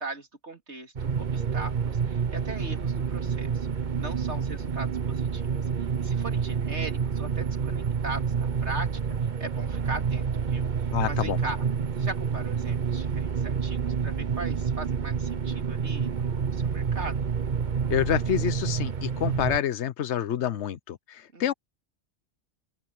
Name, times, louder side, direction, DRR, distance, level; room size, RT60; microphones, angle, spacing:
voice 1, 0.0-3.7 4.0-5.5 5.8-9.0 9.4-11.6 12.0-17.3 21.3-21.5, right 2 dB, 70° right, 3.4 m, -39 dB
sound 1, 1.0-19.6, right 6 dB, 45° right, 1.1 m, -28 dB
voice 2, 10.9-11.4 17.9-21.5, left 9 dB, 70° left, 1.1 m, -28 dB
open air
omnidirectional pair, 1.2 m